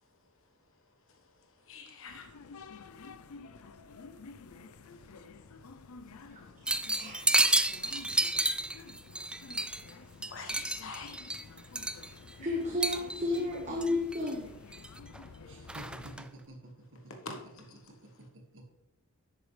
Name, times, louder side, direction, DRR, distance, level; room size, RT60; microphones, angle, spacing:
voice 1, 1.7-2.3 4.9-5.0 8.1-8.2 10.3-11.2 11.6-11.8 12.3-12.4 17.2-17.4, left 4 dB, 65° left, 1.3 m, -45 dB
sound 1, 2.1-16.2, left 4 dB, 85° left, 0.6 m, -50 dB
voice 2, 6.3-8.1 12.4-14.5, left 2 dB, 35° right, 1.4 m, -34 dB
sound 2, 6.7-9.9 10.2-12.3 12.8-13.4 13.8-14.3 14.7-15.2 15.7-16.2, right 2 dB, 5° right, 0.3 m, -30 dB
voice 3, 15.4-17.0 17.9-18.6, right 1 dB, 60° right, 1.9 m, -50 dB
10.5 x 8.3 x 3.3 m
head